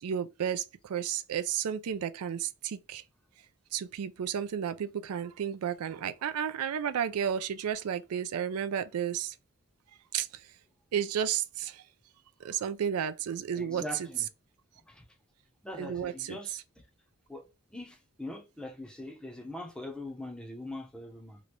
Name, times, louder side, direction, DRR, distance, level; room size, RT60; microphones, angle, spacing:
voice 1, 0.0-3.0 3.7-9.4 10.1-10.4 10.9-11.8 12.4-13.8 15.8-16.4, right 8 dB, 85° right, 0.4 m, -32 dB
voice 2, 13.5-14.3 14.9-15.1 15.6-16.6 17.3-17.5 17.7-21.4, left 1 dB, 5° left, 0.6 m, -42 dB
2.9 x 2.5 x 3.2 m
head